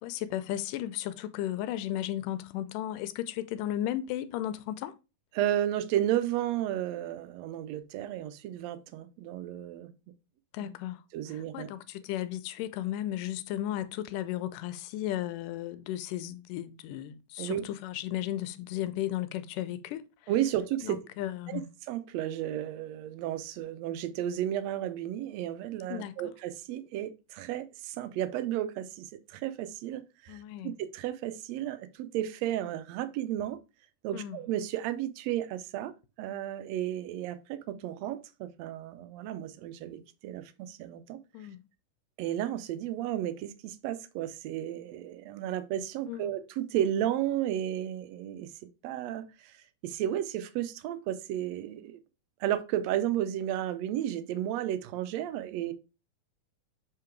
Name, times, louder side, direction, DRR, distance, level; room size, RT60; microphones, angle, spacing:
voice 1, 0.0-4.9 10.5-11.0 11.3-20.0 20.8-21.7 25.9-26.2 30.3-30.7 34.1-34.4 41.3-41.6 46.1-46.3, left 13 dB, 90° left, 2.2 m, -35 dB
voice 2, 5.3-9.9 10.6-10.7 11.1-11.7 17.4-17.6 20.3-21.0 21.5-21.6 21.9-33.6 34.0-35.9 36.2-41.2 42.2-48.5 48.8-49.6 49.8-52.0 52.4-55.7, right 11 dB, 80° right, 1.5 m, -33 dB
7.3 x 3.8 x 4.5 m
omnidirectional pair, 3.7 m